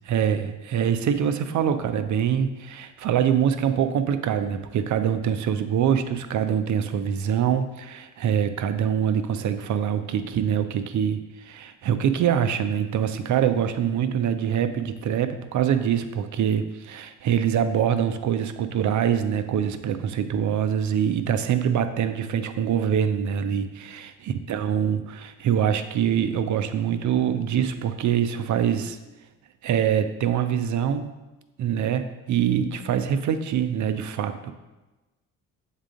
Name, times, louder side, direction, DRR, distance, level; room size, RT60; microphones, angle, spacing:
voice 1, 0.1-29.0 29.6-31.1 31.6-34.5, right 8 dB, 45° right, 10 dB, 0.6 m, -24 dB
7.2 x 3.7 x 3.6 m, 1.1 s
figure-of-eight pair, 45°, 44 cm